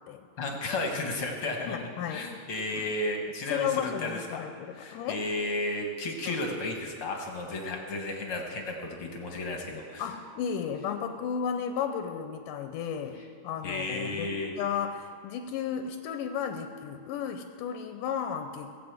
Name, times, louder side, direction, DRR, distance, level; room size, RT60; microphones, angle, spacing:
voice 1, 0.4-1.8 2.1-4.4 4.7-10.1 13.6-14.5, left 2 dB, 55° left, 1 dB, 1.6 m, -33 dB
voice 2, 1.7-2.3 2.7-2.8 3.5-5.2 6.3-6.4 10.0-18.7, left 8 dB, 85° left, 7 dB, 2.2 m, -34 dB
16.5 x 7.6 x 7.9 m, 2.2 s
omnidirectional pair, 3.9 m